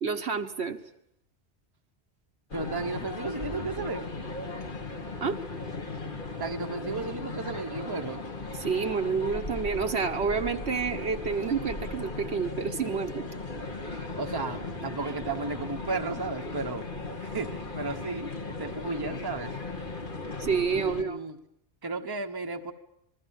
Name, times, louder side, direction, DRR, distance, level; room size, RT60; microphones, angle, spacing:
voice 1, 0.0-0.8 5.2-5.4 8.6-13.3 20.4-21.2, right 5 dB, 65° right, 6 dB, 1.5 m, -29 dB
sound 1, 2.5-21.0, left 3 dB, 45° left, 2.1 m, -37 dB
voice 2, 2.5-4.1 6.4-8.3 14.2-16.9 17.2-19.6 20.7-21.4 21.8-22.7, right 3 dB, 20° right, 5 dB, 1.1 m, -34 dB
26.5 x 20.0 x 7.3 m, 0.77 s
omnidirectional pair, 1.2 m